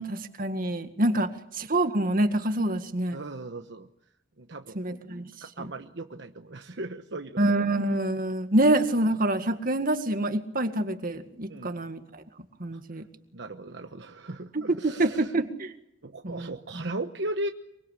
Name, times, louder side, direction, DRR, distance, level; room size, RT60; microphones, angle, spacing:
voice 1, 0.0-3.2 4.8-5.3 5.6-5.7 7.4-12.2 12.6-13.0 14.5-15.7 16.2-16.8, right 1 dB, 50° right, 8 dB, 2.0 m, -26 dB
voice 2, 3.1-3.9 4.4-4.9 5.4-7.4 11.5-11.9 12.7-12.8 13.3-15.3 16.0-17.5, right 2 dB, 70° right, 6 dB, 1.1 m, -37 dB
24.0 x 24.0 x 8.4 m, 0.80 s
head